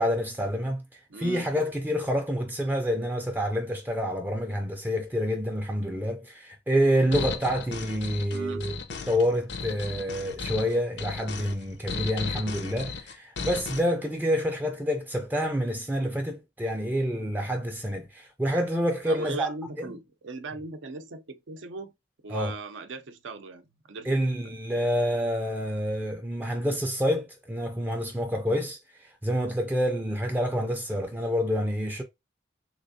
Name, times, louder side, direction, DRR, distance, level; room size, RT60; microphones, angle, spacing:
voice 1, 0.0-8.8 9.1-19.5 19.8-20.0 22.3-22.5 24.0-32.0, equal, 10° right, 0.4 m, -28 dB
voice 2, 1.1-1.5 8.2-8.7 19.1-21.9 22.2-24.2 24.4-24.5, right 3 dB, 80° right, 0.5 m, -38 dB
sound 1, 7.1-13.8, left 5 dB, 65° left, 0.5 m, -35 dB
3.4 x 3.0 x 2.6 m
head